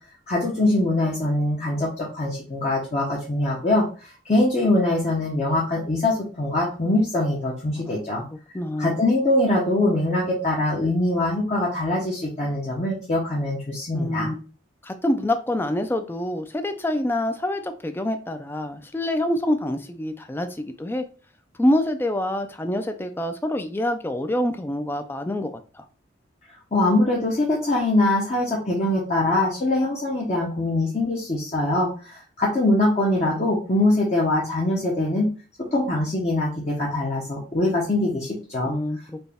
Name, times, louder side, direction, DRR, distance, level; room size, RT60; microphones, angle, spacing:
voice 1, 0.3-8.2 8.8-14.3 26.7-35.3 35.6-38.8, left 2 dB, 35° left, -4 dB, 0.7 m, -23 dB
voice 2, 8.5-9.0 13.9-14.4 14.8-21.0 21.6-25.8 38.6-39.3, left 1 dB, 10° left, 8 dB, 0.3 m, -26 dB
4.1 x 2.2 x 3.4 m, 0.37 s
head